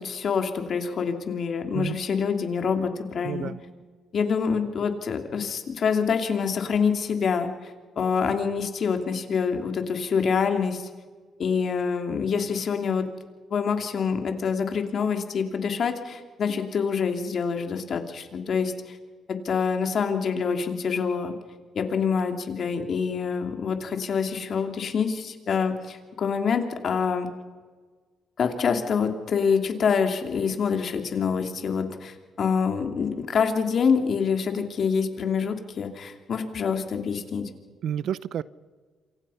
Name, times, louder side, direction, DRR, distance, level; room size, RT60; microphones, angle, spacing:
voice 1, 0.0-3.5 4.1-7.7 8.0-10.9 11.4-13.0 13.5-19.0 19.3-21.3 21.7-27.3 28.4-37.5, left 6 dB, 55° left, 5 dB, 2.9 m, -26 dB
voice 2, 3.2-3.6 37.8-38.4, right 9 dB, 70° right, 19 dB, 0.7 m, -30 dB
27.5 x 25.5 x 5.8 m, 1.5 s
cardioid pair, 90°, 0 cm